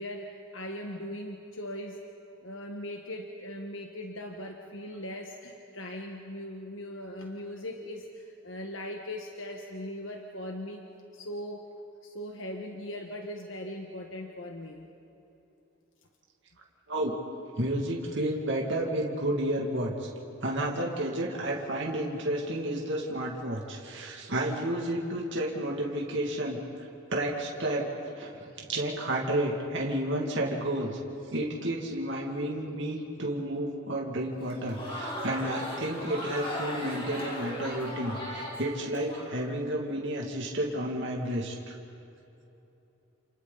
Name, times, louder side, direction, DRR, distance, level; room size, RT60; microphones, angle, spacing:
voice 1, 0.0-2.0 2.4-10.8 11.1-11.7 12.0-14.9 39.4-39.5, left 1 dB, 70° left, 2 dB, 1.5 m, -39 dB
voice 2, 17.6-20.1 20.4-26.6 27.1-27.9 28.2-31.0 31.3-41.8, right 1 dB, 65° right, -2 dB, 2.3 m, -31 dB
Crowd, 34.4-39.2, left 1 dB, 30° left, 5.5 m, -37 dB
30.0 x 28.5 x 4.1 m, 2.9 s
head